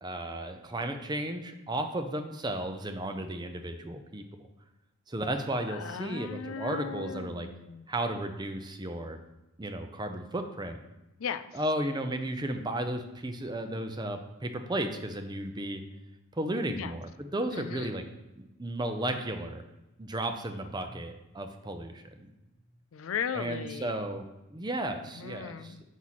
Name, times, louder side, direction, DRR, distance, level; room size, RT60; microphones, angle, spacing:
voice 1, 0.0-4.2 5.1-7.5 7.9-9.2 9.6-10.8 11.5-15.8 16.4-18.0 18.4-19.6 20.0-22.3 23.3-25.7, right 1 dB, 20° right, 6 dB, 0.6 m, -34 dB
voice 2, 5.7-7.9 11.2-11.6 16.8-17.0 17.5-18.0 22.9-24.0 25.2-25.8, left 7 dB, 75° left, 13 dB, 0.4 m, -37 dB
7.2 x 6.2 x 4.1 m, 0.98 s
head